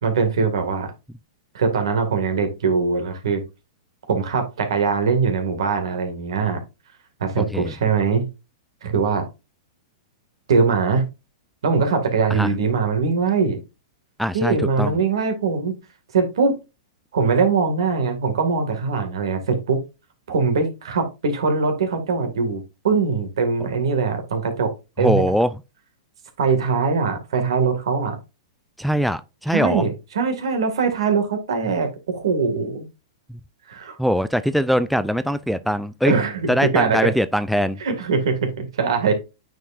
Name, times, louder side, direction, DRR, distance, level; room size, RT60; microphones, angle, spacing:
voice 1, 0.0-0.9 1.5-3.4 4.1-6.6 7.2-8.2 8.8-9.2 10.5-11.1 11.6-13.6 14.3-15.8 16.1-16.6 17.1-19.8 20.3-25.2 26.4-28.2 29.5-32.9 33.7-34.0 36.1-37.1 37.8-39.1, right 5 dB, 75° right, 2.0 m, -22 dB
voice 2, 7.4-7.7 12.3-12.5 14.2-14.9 25.0-25.5 28.8-29.8 33.3-33.4 34.0-36.1 36.5-37.8, equal, ahead, 0.3 m, -22 dB
9.1 x 4.7 x 2.5 m
hypercardioid pair, 125°, 3 cm